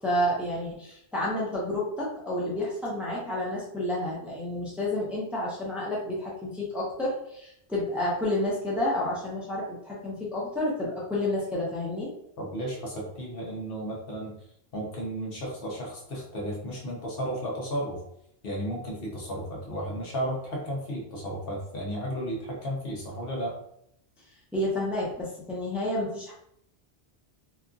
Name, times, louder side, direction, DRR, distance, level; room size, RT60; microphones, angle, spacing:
voice 1, 0.0-12.1 24.5-26.3, left 1 dB, ahead, -5 dB, 0.7 m, -30 dB
voice 2, 12.4-14.3 14.7-18.0 18.4-23.5, equal, 65° left, -2 dB, 1.0 m, -33 dB
2.8 x 2.4 x 2.4 m, 0.73 s
omnidirectional pair, 1.1 m